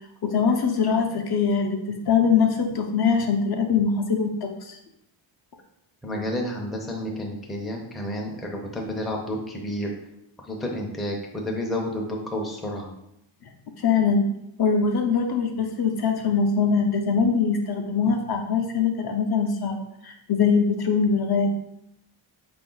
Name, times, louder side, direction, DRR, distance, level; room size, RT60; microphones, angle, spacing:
voice 1, 0.2-4.8 13.8-14.2 14.6-19.8 20.0-21.5, left 5 dB, 55° left, 4 dB, 0.5 m, -22 dB
voice 2, 6.0-9.9 10.4-12.9, left 1 dB, ahead, 0 dB, 0.4 m, -30 dB
4.3 x 2.5 x 3.8 m, 0.80 s
wide cardioid pair, 150°, 48 cm